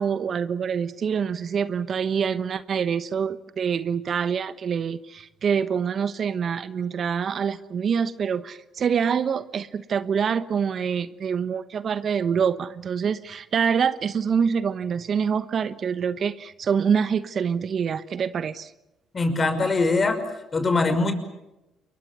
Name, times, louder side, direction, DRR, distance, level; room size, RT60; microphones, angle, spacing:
voice 1, 0.0-18.7, right 7 dB, 50° right, 14 dB, 1.1 m, -25 dB
voice 2, 19.1-20.2 20.5-21.1, left 3 dB, 35° left, 8 dB, 5.7 m, -22 dB
29.0 x 23.0 x 7.0 m, 0.96 s
hypercardioid pair, 55°, 0 cm